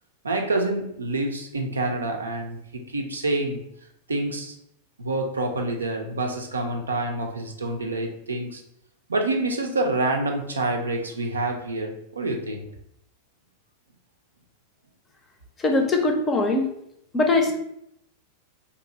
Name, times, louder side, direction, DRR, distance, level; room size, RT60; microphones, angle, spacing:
voice 1, 0.2-3.6 4.1-4.5 5.0-8.6 9.1-12.7, right 2 dB, 75° right, 3 dB, 0.5 m, -27 dB
voice 2, 15.6-16.7 17.1-17.5, left 2 dB, 20° left, 4 dB, 0.6 m, -21 dB
2.7 x 2.6 x 3.8 m, 0.76 s
figure-of-eight pair, 90°, 0 cm